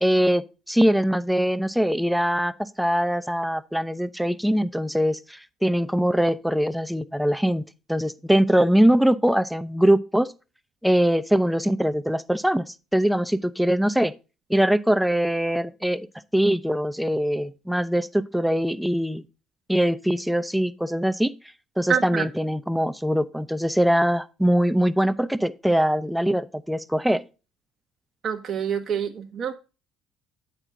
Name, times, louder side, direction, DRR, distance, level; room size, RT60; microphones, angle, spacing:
voice 1, 0.0-10.3 10.8-14.1 14.5-16.1 16.3-19.2 19.7-21.3 21.8-27.2, equal, ahead, 0.6 m, -22 dB
voice 2, 21.9-22.2 28.2-29.6, right 8 dB, 50° right, 0.8 m, -26 dB
8.9 x 5.9 x 3.7 m
hypercardioid pair, 55°, 0 cm